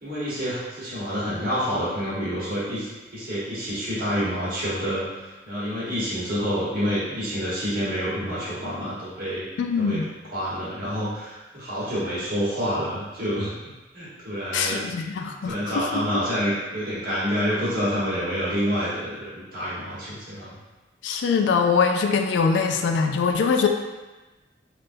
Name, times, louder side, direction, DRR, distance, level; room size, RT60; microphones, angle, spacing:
voice 1, 0.0-5.0 5.4-9.5 9.7-10.0 10.3-13.5 13.9-14.8 15.4-20.5, equal, 50° right, -10 dB, 1.3 m, -28 dB
voice 2, 9.6-10.1 14.5-16.0 21.0-23.7, left 5 dB, 75° left, 5 dB, 0.3 m, -23 dB
3.5 x 2.4 x 2.6 m, 1.2 s
head